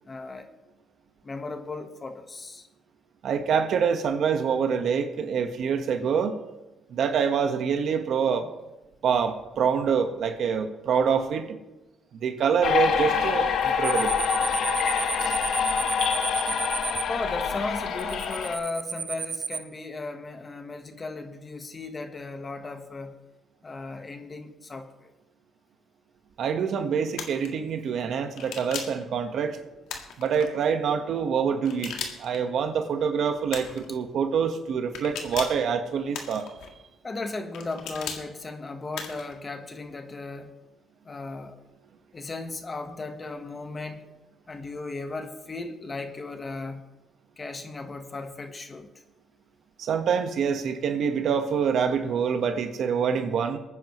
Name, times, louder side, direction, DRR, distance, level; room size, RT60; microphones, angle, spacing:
voice 1, 0.1-0.5 1.2-2.7 17.1-23.2 23.6-25.1 37.0-40.5 41.0-41.6 42.1-44.0 44.5-46.8 47.4-48.9, left 3 dB, 30° left, 7 dB, 1.3 m, -36 dB
voice 2, 3.2-6.4 6.9-8.5 9.0-11.6 12.2-14.2 26.4-29.6 30.2-31.9 32.2-36.5 49.8-53.6, right 6 dB, 70° right, 6 dB, 1.4 m, -26 dB
sound 1, 12.6-18.6, left 7 dB, 70° left, 1.1 m, -26 dB
sound 2, 13.8-17.0 18.0-19.6, right 6 dB, 45° right, 0.8 m, -32 dB
sound 3, 27.1-27.5 28.4-29.0 29.9-30.5 31.6-32.4 33.5-33.9 34.9-35.6 36.1-36.7 37.5-38.2 38.9-39.3, left 6 dB, 90° left, 1.7 m, -36 dB
22.5 x 9.6 x 3.2 m, 1.0 s
cardioid pair, 90°, 0 cm